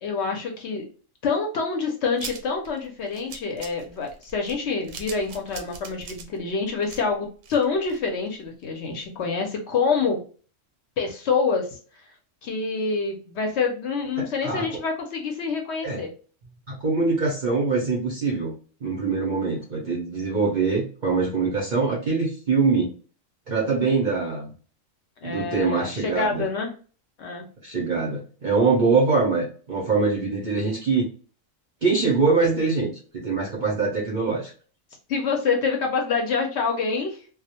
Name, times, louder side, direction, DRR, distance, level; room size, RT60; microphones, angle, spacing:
voice 1, 0.0-0.8 1.2-10.2 11.0-11.8 12.4-16.1 25.2-26.7 27.2-27.5 35.1-37.2, left 4 dB, 65° left, 2 dB, 0.8 m, -26 dB
sound 1, 2.2-8.3 8.6-8.7 9.0-9.1, right 5 dB, 80° right, 1.0 m, -41 dB
voice 2, 14.2-14.6 15.8-16.0 16.7-18.5 18.8-22.9 23.5-24.5 25.2-26.5 27.6-31.1 31.8-34.5, right 4 dB, 50° right, -3 dB, 0.6 m, -23 dB
2.2 x 2.0 x 2.7 m, 0.39 s
omnidirectional pair, 1.4 m